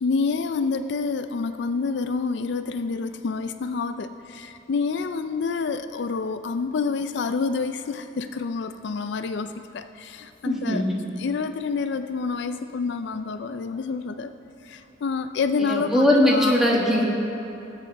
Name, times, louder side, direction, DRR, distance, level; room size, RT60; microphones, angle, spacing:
voice 1, 0.0-10.8 11.2-14.3 14.6-16.6, left 4 dB, 65° left, 10 dB, 0.4 m, -28 dB
voice 2, 10.4-10.9 15.6-17.0, left 1 dB, ahead, -3 dB, 1.4 m, -20 dB
18.5 x 7.8 x 4.6 m, 2.8 s
head